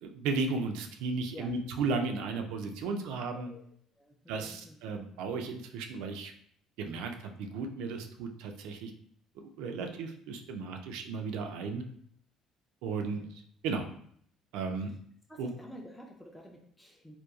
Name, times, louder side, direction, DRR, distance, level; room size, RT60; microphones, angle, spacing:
voice 1, 0.0-3.5 4.3-6.3 6.8-8.9 9.4-11.8 12.8-13.9 14.5-14.9 15.4-15.5, right 4 dB, 85° right, 5 dB, 0.4 m, -35 dB
voice 2, 3.4-3.7 4.0-4.8 13.1-13.3 15.3-17.2, equal, ahead, -1 dB, 0.3 m, -50 dB
2.9 x 2.2 x 2.3 m, 0.65 s
cardioid pair, 155°, 0 cm